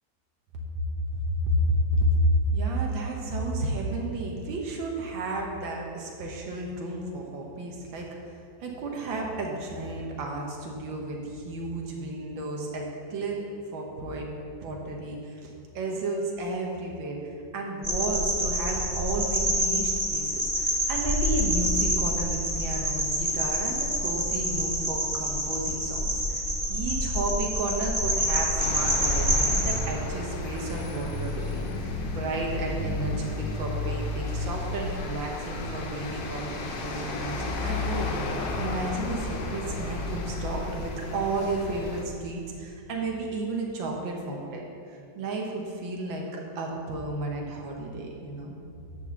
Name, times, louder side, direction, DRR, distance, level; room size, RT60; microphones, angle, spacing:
voice 1, 1.1-2.2 2.5-8.1 8.6-13.4 13.7-14.3 14.6-17.2 17.5-38.1 38.6-48.5, right 2 dB, 90° right, 0 dB, 1.8 m, -32 dB
sound 1, 17.8-29.7, equal, 20° right, 2.0 m, -27 dB
sound 2, 28.6-42.0, left 2 dB, 75° left, 1.6 m, -32 dB
10.5 x 4.2 x 7.0 m, 2.5 s
omnidirectional pair, 2.0 m